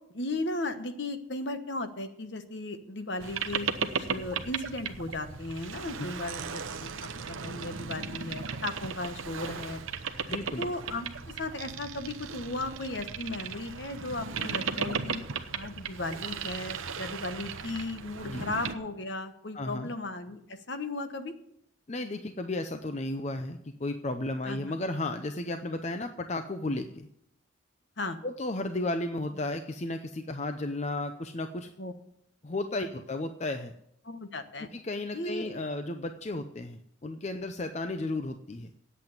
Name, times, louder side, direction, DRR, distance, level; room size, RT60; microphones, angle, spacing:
voice 1, 0.1-7.1 7.4-9.8 10.1-11.1 11.4-15.2 15.5-21.3 24.4-24.8 28.0-28.2 31.8-31.9 34.0-34.7 35.1-35.5, left 2 dB, 55° left, 9 dB, 1.1 m, -36 dB
Boat Water vehicle, 3.2-18.8, right 6 dB, 80° right, 0.9 m, -36 dB
voice 2, 10.3-10.7 18.2-18.4 19.5-19.9 21.9-27.1 28.2-31.7 32.4-33.7 34.7-38.7, left 2 dB, 35° left, 7 dB, 0.6 m, -34 dB
8.8 x 8.3 x 9.3 m, 0.76 s
head